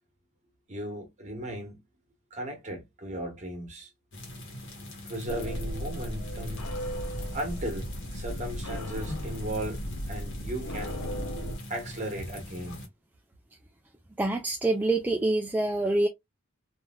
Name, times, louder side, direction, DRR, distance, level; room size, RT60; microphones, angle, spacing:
voice 1, 0.7-1.8 2.3-3.9 5.0-6.7 7.3-11.0 11.7-12.9, right 1 dB, 35° right, 1.3 m, -36 dB
sound 1, 4.1-12.9, left 1 dB, 65° left, 1.1 m, -43 dB
sound 2, 5.3-11.6, equal, 80° left, 0.8 m, -35 dB
voice 2, 14.2-16.1, right 2 dB, 10° right, 0.3 m, -26 dB
3.2 x 2.6 x 2.2 m
head